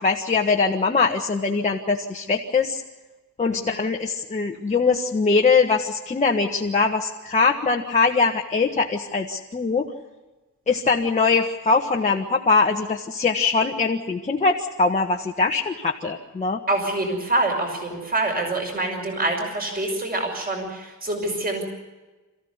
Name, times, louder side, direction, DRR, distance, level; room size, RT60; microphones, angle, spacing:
voice 1, 0.0-2.8 3.4-9.9 10.7-16.6, left 4 dB, 25° left, 0 dB, 1.5 m, -22 dB
voice 2, 16.7-21.6, right 2 dB, 30° right, 2 dB, 5.9 m, -26 dB
28.0 x 15.5 x 8.1 m, 1.2 s
wide cardioid pair, 145°, 31 cm